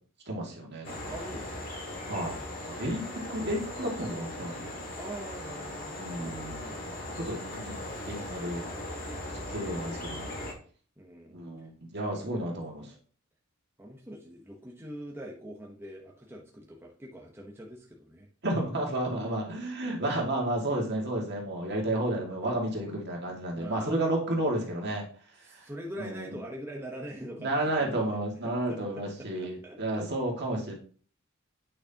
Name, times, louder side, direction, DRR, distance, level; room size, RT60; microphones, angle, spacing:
voice 1, 0.3-1.2 2.1-4.8 6.0-6.7 7.2-7.7 8.1-8.6 9.5-10.3 11.3-12.8 18.4-25.0 25.4-25.7 26.0-26.3 27.4-30.7, right 1 dB, 55° right, -1 dB, 2.1 m, -32 dB
sound 1, 0.8-10.5, left 1 dB, 45° left, 2.1 m, -39 dB
voice 2, 1.1-1.7 5.0-6.7 11.0-11.7 12.1-12.5 13.8-18.3 22.2-22.3 23.5-24.3 25.4-30.0, right 1 dB, 10° right, -2 dB, 1.0 m, -44 dB
8.7 x 6.3 x 2.9 m, 0.42 s
head